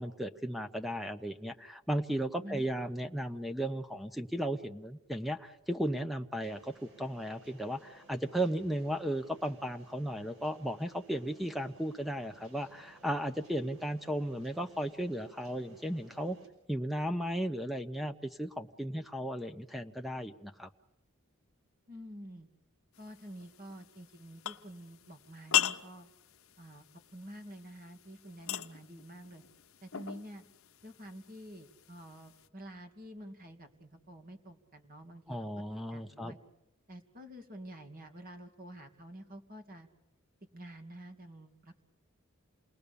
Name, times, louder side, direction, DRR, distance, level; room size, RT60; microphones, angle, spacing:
voice 1, 0.0-16.4 16.7-20.7 35.3-36.3, equal, ahead, 8 dB, 0.8 m, -35 dB
sound 1, 6.4-16.5, right 2 dB, 70° right, 5.7 m, -59 dB
voice 2, 21.9-22.5 23.0-26.1 26.6-26.9 27.1-29.4 29.8-30.4 30.8-35.5 35.9-36.4 36.9-39.9 40.5-41.8, equal, 40° right, 6 dB, 2.6 m, -48 dB
sound 2, 22.9-32.5, left 11 dB, 75° left, 0.9 m, -39 dB
29.0 x 20.0 x 6.9 m, 0.98 s
head